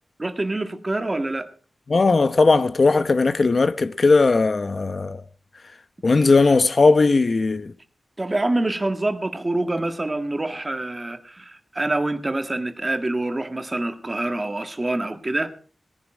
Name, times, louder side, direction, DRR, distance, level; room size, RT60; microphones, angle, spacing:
voice 1, 0.2-1.5 8.2-15.5, right 2 dB, 30° right, 1.7 m, -26 dB
voice 2, 1.9-5.2 6.0-7.7, left 3 dB, 55° left, 0.9 m, -18 dB
18.5 x 10.5 x 4.9 m
wide cardioid pair, 70°, 0 cm